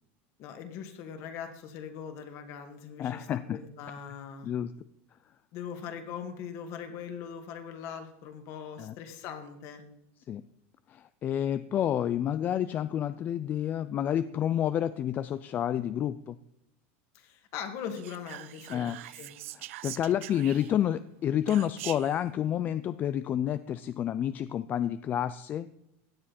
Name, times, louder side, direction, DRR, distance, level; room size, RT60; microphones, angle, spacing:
voice 1, 0.4-4.5 5.5-9.8 17.1-18.9 19.2-19.3 20.1-20.3, left 7 dB, 45° left, 7 dB, 2.2 m, -41 dB
voice 2, 3.0-3.6 4.4-4.7 8.8-8.9 10.3-10.4 10.9-16.4 18.7-19.0 19.5-25.7, left 10 dB, 25° left, 14 dB, 0.4 m, -29 dB
Whispering, 17.9-20.9 21.5-22.2, right 16 dB, 85° right, 0.6 m, -43 dB
16.5 x 10.0 x 4.3 m, 0.82 s
supercardioid pair, 155°, 7 cm